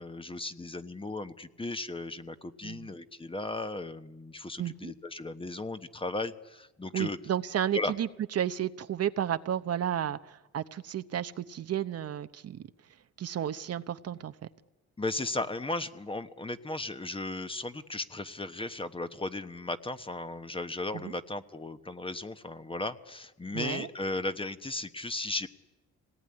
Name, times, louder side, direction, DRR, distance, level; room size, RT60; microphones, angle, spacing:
voice 1, 0.0-7.2 7.7-7.9 15.0-25.5, left 2 dB, 20° left, 10 dB, 1.2 m, -36 dB
voice 2, 4.6-4.9 6.9-12.6 13.2-14.3 20.9-21.1 23.5-23.9, right 10 dB, 55° right, 11 dB, 0.8 m, -32 dB
25.5 x 18.5 x 9.8 m, 1.1 s
cardioid pair, 90°, 30 cm